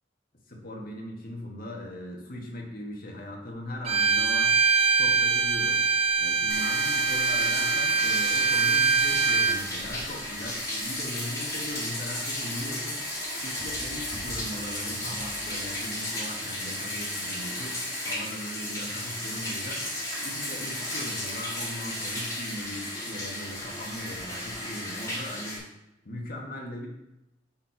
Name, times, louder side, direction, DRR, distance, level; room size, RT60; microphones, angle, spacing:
voice 1, 0.5-4.6 5.0-5.8 6.2-13.0 13.4-19.8 20.2-25.6 26.0-26.9, left 1 dB, 55° left, -1 dB, 1.5 m, -39 dB
Bowed string instrument, 3.8-9.6, right 5 dB, 35° right, 0.5 m, -23 dB
Bathtub (filling or washing), 6.5-25.6, left 1 dB, 20° left, 1.9 m, -34 dB
5.7 x 4.5 x 5.6 m, 0.90 s
head